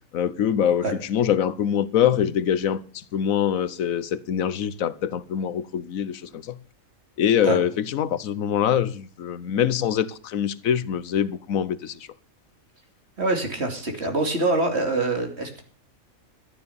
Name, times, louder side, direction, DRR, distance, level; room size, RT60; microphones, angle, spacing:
voice 1, 0.1-6.6 7.2-12.0, left 9 dB, 80° left, 17 dB, 1.2 m, -24 dB
voice 2, 13.2-15.6, right 2 dB, 50° right, 4 dB, 3.0 m, -25 dB
13.5 x 9.6 x 6.9 m, 0.43 s
omnidirectional pair, 1.4 m